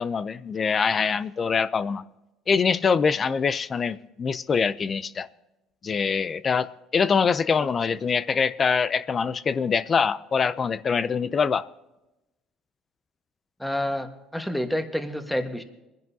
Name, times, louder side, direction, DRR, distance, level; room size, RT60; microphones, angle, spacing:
voice 1, 0.0-2.0 2.5-5.3 5.8-11.6, left 5 dB, 35° left, 0.5 m, -24 dB
voice 2, 13.6-15.6, left 1 dB, 5° left, 1.4 m, -28 dB
23.5 x 10.5 x 2.8 m
supercardioid pair, 100°, 0 cm